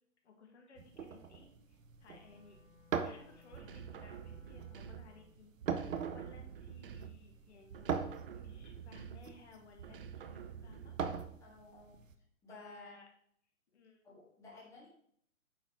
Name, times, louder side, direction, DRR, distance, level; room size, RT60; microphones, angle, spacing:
voice 1, 0.2-2.6 2.9-5.5 5.8-8.0 8.3-11.0 12.5-13.1 13.7-14.0, left 4 dB, 50° left, 2 dB, 1.9 m, -60 dB
sound 1, 0.8-12.1, right 6 dB, 65° right, 1.0 m, -42 dB
Wind instrument woodwind instrument, 2.1-5.5, left 8 dB, 70° left, 2.5 m, -64 dB
sound 2, 3.5-5.2 5.6-7.4 7.7-9.4 9.8-11.5, right 7 dB, 40° right, 0.6 m, -49 dB
voice 2, 11.4-11.9 12.4-13.0 14.0-14.9, left 3 dB, 5° left, -5 dB, 1.9 m, -54 dB
9.2 x 4.1 x 4.4 m, 0.65 s
hypercardioid pair, 145°, 42 cm